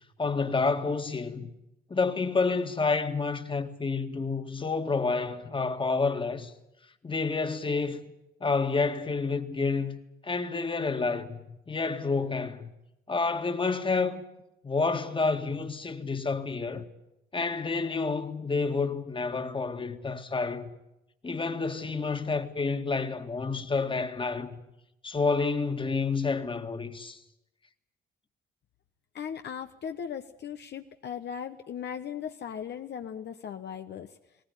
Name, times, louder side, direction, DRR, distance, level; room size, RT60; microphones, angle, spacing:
voice 1, 0.2-1.5 1.9-6.5 7.0-8.0 8.4-12.7 13.1-14.2 14.6-16.9 17.3-20.7 21.2-24.6 25.0-27.2, left 4 dB, 25° left, 2.0 m, -29 dB
voice 2, 29.1-34.2, left 8 dB, 60° left, 1.1 m, -38 dB
19.5 x 18.5 x 10.0 m
cardioid pair, 90°, 20 cm